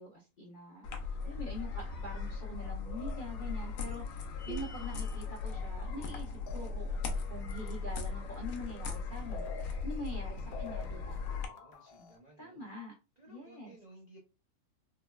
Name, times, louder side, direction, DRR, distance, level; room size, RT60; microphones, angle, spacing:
voice 1, 0.0-7.0 7.3-11.2 12.0-12.1 12.4-12.9 13.3-13.7, left 1 dB, 50° left, -2 dB, 0.6 m, -45 dB
sound 1, 0.8-11.5, left 4 dB, 70° left, 0.9 m, -38 dB
sound 2, 4.4-5.2, right 3 dB, 5° right, 0.8 m, -47 dB
sound 3, 6.5-7.3 8.9-9.0 9.2-12.2, left 4 dB, 90° left, 1.1 m, -48 dB
voice 2, 10.1-12.6 13.2-14.2, right 2 dB, 50° right, -3 dB, 0.5 m, -59 dB
3.7 x 2.1 x 2.2 m, 0.29 s
omnidirectional pair, 1.6 m